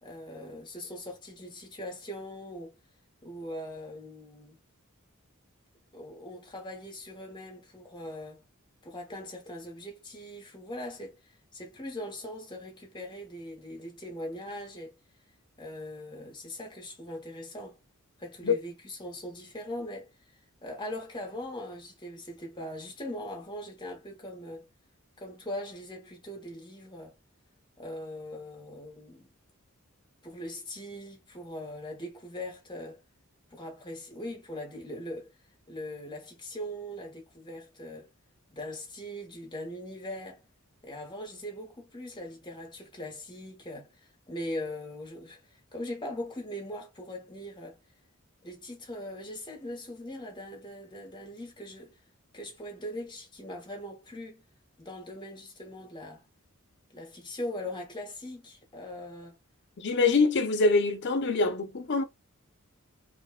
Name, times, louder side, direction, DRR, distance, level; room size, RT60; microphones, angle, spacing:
voice 1, 0.0-2.7 3.2-4.6 5.9-8.4 8.8-11.2 11.5-14.9 15.6-17.8 18.2-20.1 20.6-24.7 25.2-27.1 27.8-29.3 30.2-33.0 33.5-35.3 35.7-38.1 38.5-40.4 40.8-43.9 44.3-47.8 48.4-52.0 52.3-54.4 54.8-56.2 56.9-59.4, left 1 dB, 20° left, 0.9 m, -40 dB
voice 2, 59.8-62.0, left 3 dB, 55° left, 0.5 m, -24 dB
2.5 x 2.2 x 2.2 m
head